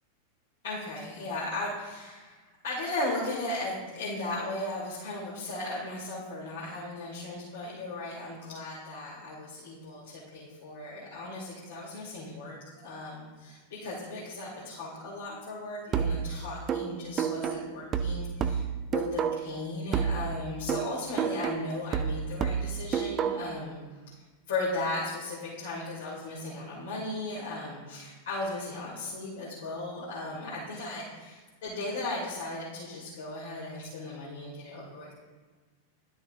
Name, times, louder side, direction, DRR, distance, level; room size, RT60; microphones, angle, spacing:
voice 1, 0.6-12.6 12.8-18.6 18.9-23.8 24.5-35.1, left 2 dB, 60° left, -8 dB, 2.4 m, -36 dB
sound 1, 15.9-19.6 19.9-23.6, right 7 dB, 25° right, 0.5 m, -30 dB
12.0 x 6.1 x 2.6 m, 1.4 s
figure-of-eight pair, 90°, 0 cm